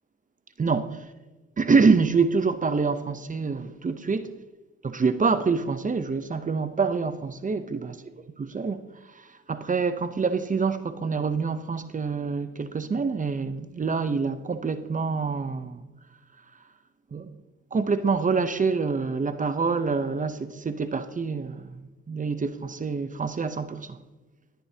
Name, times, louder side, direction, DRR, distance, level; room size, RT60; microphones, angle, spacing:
voice 1, 0.6-1.0 1.6-4.3 4.8-8.0 8.4-8.8 9.2-15.8 17.1-17.3 17.7-24.0, right 4 dB, 25° right, 0.7 m, -26 dB
19.5 x 10.5 x 2.8 m
cardioid pair, 90°, 30 cm